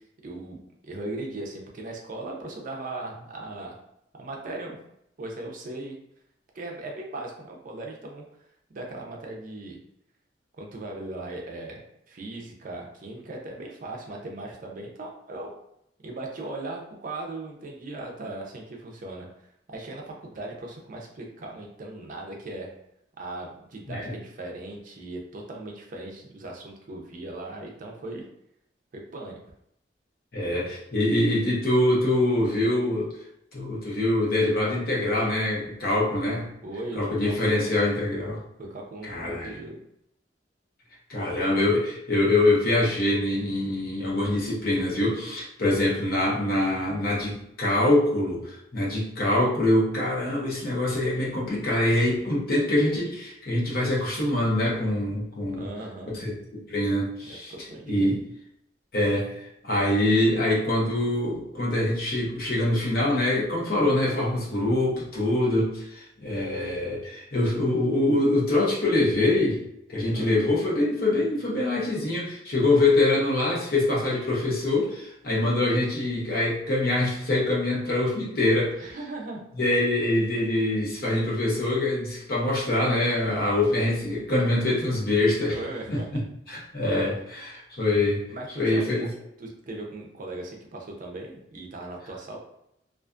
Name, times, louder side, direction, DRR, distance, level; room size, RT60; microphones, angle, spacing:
voice 1, 0.2-0.6 0.8-3.8 4.2-4.8 5.2-6.0 6.5-8.2 8.7-9.8 10.6-15.6 16.0-19.3 19.7-22.7 23.2-28.2 28.9-29.4 36.6-37.8 38.6-39.8 55.5-56.3 57.3-58.2 70.1-70.4 78.8-79.4 85.5-86.1 88.3-89.1 89.4-92.4, right 2 dB, 50° right, 0 dB, 0.5 m, -38 dB
voice 2, 30.3-33.1 33.5-36.5 37.0-38.4 39.1-39.5 41.1-55.7 56.1-57.5 57.9-58.2 58.9-59.4 59.6-69.6 69.9-78.7 79.6-85.6 85.9-86.0 86.5-88.2 88.6-89.1, left 1 dB, 55° left, -5 dB, 0.8 m, -24 dB
2.4 x 2.3 x 2.4 m, 0.77 s
head